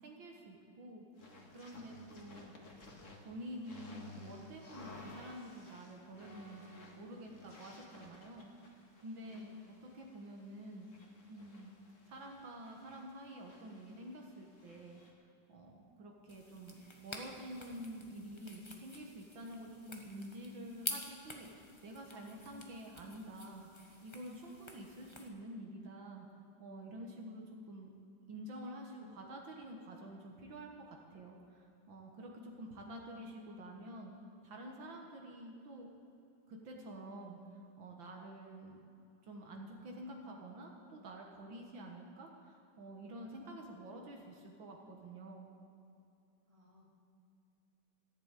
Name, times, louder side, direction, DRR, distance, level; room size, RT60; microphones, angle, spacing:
voice 1, 0.0-2.5 3.2-9.5 9.8-11.0 11.3-11.7 12.1-15.0 15.5-26.3 26.6-27.9 28.3-34.2 34.4-35.9 36.5-37.4 37.8-38.8 39.2-45.5, right 1 dB, 75° right, 1 dB, 2.2 m, -49 dB
sound 1, 1.2-15.1, left 2 dB, 40° left, 2.1 m, -57 dB
voice 2, 9.2-9.6 46.5-46.8, right 1 dB, 15° right, -4 dB, 2.9 m, -64 dB
sound 2, 16.3-25.3, left 2 dB, 15° left, 1.1 m, -49 dB
14.5 x 11.0 x 8.2 m, 2.7 s
omnidirectional pair, 2.2 m